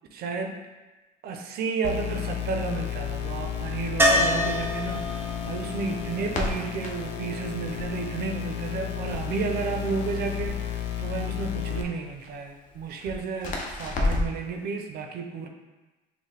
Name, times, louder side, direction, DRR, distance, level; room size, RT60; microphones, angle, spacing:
voice 1, 0.1-0.6 1.2-15.5, right 4 dB, 65° right, 4 dB, 0.5 m, -32 dB
sound 1, 1.8-11.8, left 10 dB, 85° left, 0.5 m, -33 dB
Crackle, 2.9-14.5, left 2 dB, 50° left, 0.7 m, -35 dB
sound 2, 4.0-7.9 10.5-10.6 10.9-11.0, equal, 15° right, 0.6 m, -27 dB
5.4 x 2.1 x 3.3 m, 1.1 s
cardioid pair, 110°, 17 cm